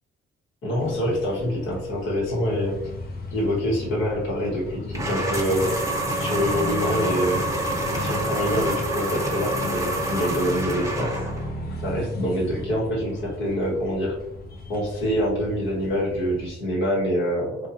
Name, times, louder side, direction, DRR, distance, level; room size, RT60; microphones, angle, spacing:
voice 1, 0.6-2.8 3.3-5.7 6.2-7.6 8.0-11.2 11.8-14.2 14.7-17.7, equal, 75° left, -4 dB, 1.3 m, -25 dB
sound 1, 0.8-16.5, left 2 dB, 50° left, 0.6 m, -35 dB
sound 2, 4.9-11.5, right 1 dB, 15° right, 0.7 m, -27 dB
2.9 x 2.4 x 2.5 m, 0.81 s
cardioid pair, 90°, 20 cm